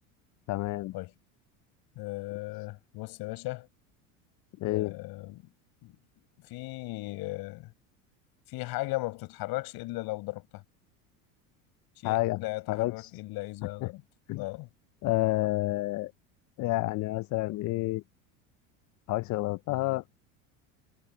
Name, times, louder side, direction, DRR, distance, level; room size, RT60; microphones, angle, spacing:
voice 1, 0.5-0.9 4.6-4.9 12.0-12.4 12.7-13.1 13.8-13.9 14.3-14.4 15.0-16.1 16.6-18.0 19.1-20.0, left 18 dB, 45° left, 0.7 m, -29 dB
voice 2, 2.0-3.7 4.7-5.5 5.8-6.0 6.4-7.7 8.5-10.6 12.0-14.0 14.3-14.7, left 21 dB, 60° left, 5.8 m, -37 dB
supercardioid pair, 105°, 42 cm